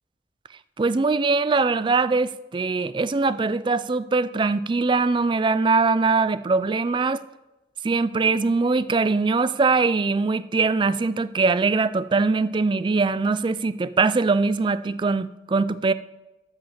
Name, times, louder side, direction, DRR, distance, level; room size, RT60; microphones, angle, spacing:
voice 1, 0.8-7.2 7.8-15.9, right 4 dB, 25° right, 15 dB, 0.3 m, -22 dB
13.0 x 5.3 x 7.2 m, 1.0 s
head